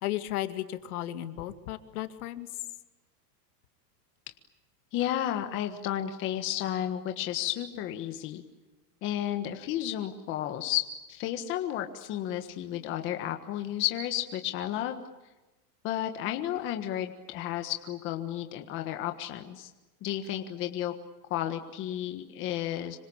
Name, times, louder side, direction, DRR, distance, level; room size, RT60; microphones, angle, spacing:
voice 1, 0.0-2.5, left 14 dB, 60° left, 9 dB, 2.4 m, -34 dB
voice 2, 4.9-8.4 9.0-15.0 15.8-19.7 20.0-20.9 21.3-23.0, left 12 dB, 25° left, 6 dB, 1.5 m, -32 dB
26.5 x 25.0 x 8.7 m, 1.1 s
supercardioid pair, 175°, 49 cm